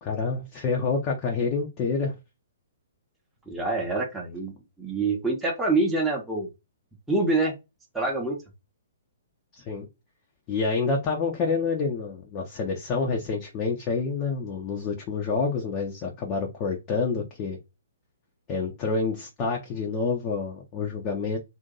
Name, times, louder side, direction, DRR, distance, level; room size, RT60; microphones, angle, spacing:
voice 1, 0.0-2.1 9.5-9.9 10.5-17.6 18.5-21.4, left 4 dB, 25° left, 0.9 m, -28 dB
voice 2, 3.5-4.5 4.8-6.5 7.1-7.6 7.9-8.4, right 3 dB, 5° right, 1.0 m, -25 dB
2.8 x 2.7 x 3.8 m
figure-of-eight pair, 120°, 0 cm